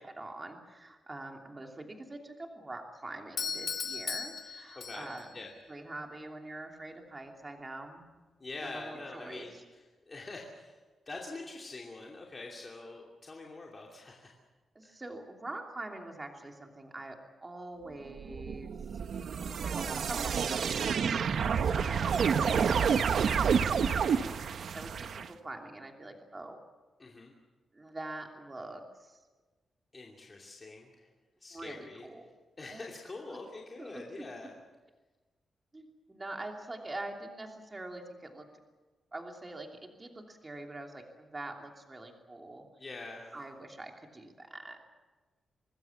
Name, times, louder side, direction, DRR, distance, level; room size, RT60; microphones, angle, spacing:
voice 1, 0.2-5.3 5.7-8.0 8.6-9.6 14.7-17.2 17.4-18.7 19.4-21.1 21.4-24.3 24.7-26.6 27.7-29.2 31.5-32.3 32.7-32.8 33.8-34.2 35.7-38.5 39.1-42.6 43.3-44.8, right 2 dB, 20° right, 2 dB, 3.0 m, -44 dB
Doorbell, 3.4-5.4, left 6 dB, 45° left, 1.6 m, -37 dB
voice 2, 4.8-5.5 8.4-10.8 11.1-14.3 14.8-15.0 27.0-27.3 29.9-31.1 31.4-32.0 32.6-34.5 42.8-43.4, left 3 dB, 25° left, -1 dB, 2.7 m, -45 dB
sound 1, 18.2-25.3, right 6 dB, 60° right, 0.9 m, -29 dB
25.5 x 20.5 x 7.2 m, 1.3 s
wide cardioid pair, 160°, 0 cm